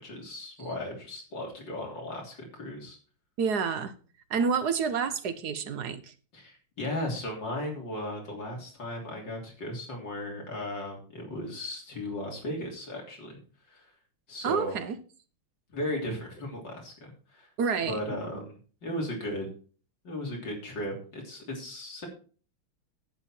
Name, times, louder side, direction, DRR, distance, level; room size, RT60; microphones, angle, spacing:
voice 1, 0.0-3.0 6.3-13.4 13.7-13.9 14.3-14.8 15.7-17.5 17.9-19.5 20.0-22.1, left 1 dB, 55° left, 4.0 m, -36 dB
voice 2, 3.4-3.9 4.3-6.1 14.4-15.0 17.6-18.2, right 6 dB, 60° right, 1.2 m, -29 dB
11.5 x 8.5 x 4.4 m
omnidirectional pair, 2.4 m